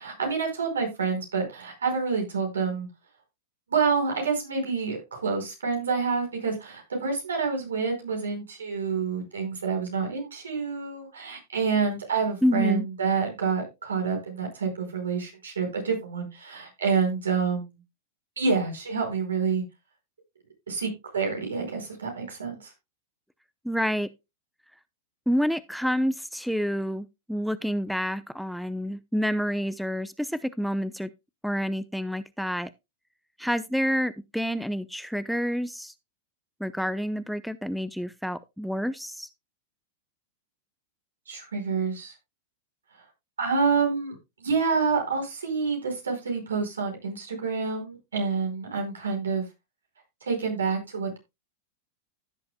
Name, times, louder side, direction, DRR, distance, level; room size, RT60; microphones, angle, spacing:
voice 1, 0.0-2.9 3.7-17.8 18.4-19.6 20.7-22.7 41.3-42.1 43.4-49.4 50.2-51.2, right 5 dB, 85° right, 5.0 m, -28 dB
voice 2, 12.4-12.9 23.6-24.1 25.3-31.1 31.4-32.7 33.4-35.9 36.6-39.3, equal, ahead, 0.7 m, -28 dB
15.5 x 6.9 x 2.2 m
hypercardioid pair, 105°, 0 cm